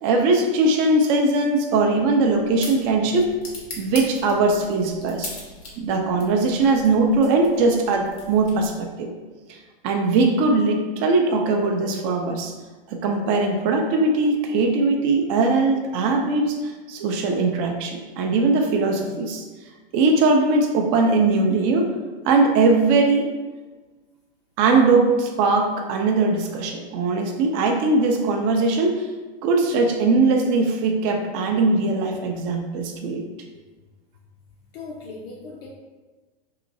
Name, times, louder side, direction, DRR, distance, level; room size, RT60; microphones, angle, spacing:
voice 1, 0.0-3.3 3.8-5.3 5.8-9.1 9.5-9.6 9.8-12.5 12.9-19.4 19.9-21.9 22.2-23.3 24.6-29.1 29.4-33.2, right 3 dB, 35° right, 3 dB, 0.4 m, -20 dB
sound 1, 2.0-8.9, left 2 dB, 85° left, 1.1 m, -41 dB
voice 2, 34.7-35.7, left 3 dB, 65° left, -4 dB, 0.7 m, -38 dB
2.9 x 2.8 x 2.6 m, 1.3 s
hypercardioid pair, 125°, 30 cm